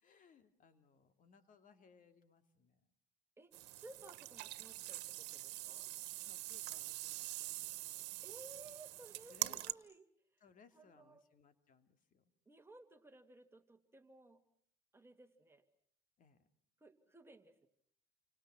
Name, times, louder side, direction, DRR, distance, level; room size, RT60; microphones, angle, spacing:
voice 1, 0.0-2.8 6.3-8.2 9.3-9.6 10.4-12.2 16.2-16.4, left 6 dB, 50° left, 9 dB, 2.6 m, -66 dB
voice 2, 3.4-5.9 8.2-10.1 10.7-11.3 12.5-14.4 14.9-15.6 16.8-17.7, right 2 dB, 15° right, 7 dB, 2.5 m, -58 dB
sound 1, 3.5-9.7, right 18 dB, 90° right, 1.4 m, -44 dB
30.0 x 26.0 x 6.1 m, 0.64 s
cardioid pair, 110°, 17 cm